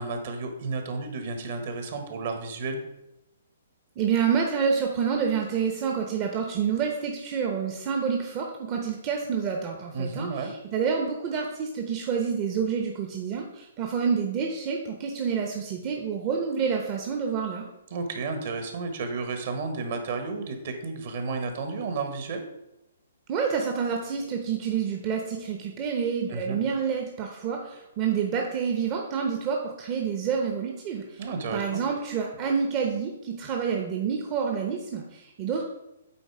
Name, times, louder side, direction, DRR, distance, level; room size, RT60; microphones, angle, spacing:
voice 1, 0.0-2.8 9.9-10.5 17.9-22.4 26.3-26.6 31.2-31.8, right 4 dB, 50° right, 6 dB, 1.4 m, -32 dB
voice 2, 4.0-17.7 23.3-31.2 31.5-35.6, right 6 dB, 30° right, 2 dB, 0.9 m, -28 dB
8.7 x 3.9 x 4.8 m, 0.91 s
figure-of-eight pair, 125°, 0 cm